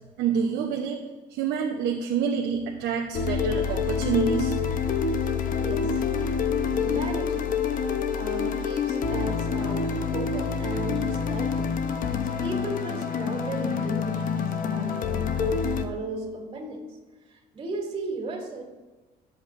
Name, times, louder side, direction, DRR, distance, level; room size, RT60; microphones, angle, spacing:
voice 1, 0.2-1.0 1.3-4.8, right 7 dB, 85° right, 1 dB, 0.9 m, -27 dB
sound 1, 3.1-15.9, left 6 dB, 55° left, 0.8 m, -27 dB
voice 2, 5.5-6.0 6.7-7.5 8.2-11.8 12.2-15.1 15.4-17.0 17.3-18.6, right 3 dB, 30° right, 0 dB, 2.8 m, -35 dB
13.5 x 7.8 x 2.6 m, 1.2 s
cardioid pair, 110°, 17 cm